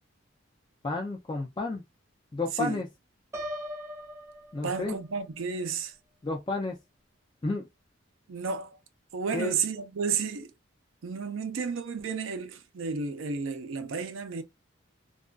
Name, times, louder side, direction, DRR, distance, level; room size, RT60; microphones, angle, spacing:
voice 1, 0.8-1.8 2.3-2.9 4.5-5.0 6.2-6.8 7.4-7.7 9.3-9.5, left 3 dB, 25° left, 0.4 m, -31 dB
Piano, 3.3-5.2, equal, 15° right, 0.6 m, -39 dB
voice 2, 4.6-5.9 8.3-8.8 9.1-10.5 11.0-14.4, right 5 dB, 90° right, 0.5 m, -32 dB
2.4 x 2.2 x 2.3 m
head